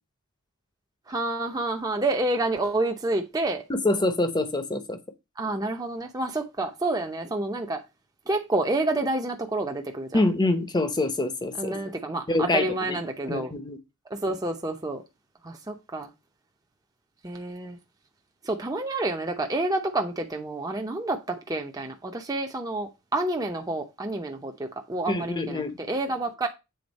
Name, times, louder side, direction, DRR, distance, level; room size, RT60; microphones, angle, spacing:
voice 1, 1.1-3.6 5.4-7.8 8.3-10.2 11.6-13.5 14.1-15.0 15.4-16.1 17.2-17.8 18.4-26.5, right 2 dB, 15° right, 0.7 m, -29 dB
voice 2, 3.7-5.0 10.1-11.7 12.3-13.0 13.3-13.8 25.1-25.7, left 2 dB, 20° left, 0.8 m, -25 dB
8.0 x 3.8 x 5.3 m
head